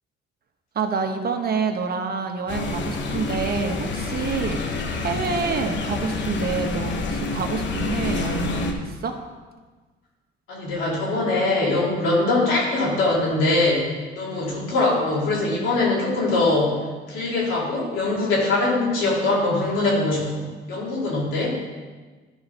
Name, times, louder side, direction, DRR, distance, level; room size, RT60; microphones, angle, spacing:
voice 1, 0.7-9.2, right 5 dB, 50° right, 5 dB, 1.1 m, -27 dB
sound 1, 2.5-8.7, left 3 dB, 65° left, 1.0 m, -28 dB
voice 2, 10.5-16.8 17.1-21.6, left 2 dB, 85° left, -5 dB, 3.1 m, -22 dB
12.0 x 4.1 x 5.5 m, 1.3 s
cardioid pair, 90°, 20 cm